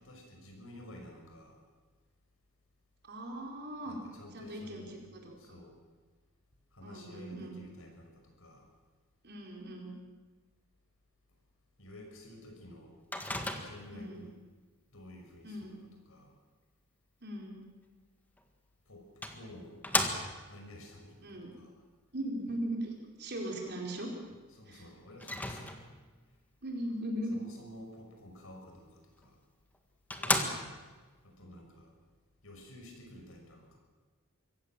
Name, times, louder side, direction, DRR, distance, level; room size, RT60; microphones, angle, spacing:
voice 1, 0.0-1.6 3.9-4.9 5.4-5.8 6.7-8.7 11.8-12.9 13.5-14.4 14.9-15.7 16.1-16.3 18.9-19.8 20.5-21.7 24.3-25.8 27.3-29.4 31.2-31.9 32.4-33.8, left 1 dB, 75° left, 2 dB, 5.7 m, -52 dB
voice 2, 3.0-4.0 4.3-5.6 6.8-7.6 9.2-9.9 13.9-14.2 15.4-15.8 17.2-17.6 21.2-21.5 22.1-24.1 24.7-24.9 26.6-27.4 30.2-30.5, right 1 dB, 55° right, 0 dB, 4.7 m, -39 dB
Microwave oven, 13.1-14.0 18.4-18.5 19.2-20.6 25.2-26.1 29.2-29.3 29.7-29.8 30.1-31.0, left 1 dB, 10° left, 1.7 m, -34 dB
25.0 x 16.0 x 7.6 m, 1.4 s
head